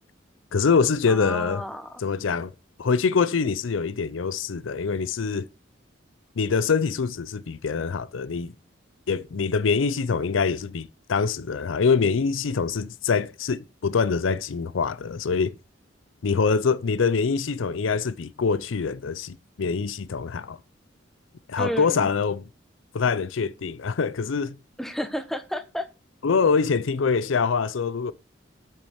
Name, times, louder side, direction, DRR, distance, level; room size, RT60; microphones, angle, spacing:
voice 1, 0.5-1.6 2.0-2.5 2.8-5.4 6.4-8.5 9.1-15.5 16.2-20.6 21.5-22.4 22.9-24.6 26.2-28.1, left 5 dB, 85° left, 0.5 m, -24 dB
voice 2, 1.1-2.0 21.6-22.1 24.8-25.9, equal, ahead, 0.9 m, -31 dB
8.5 x 6.3 x 6.3 m
head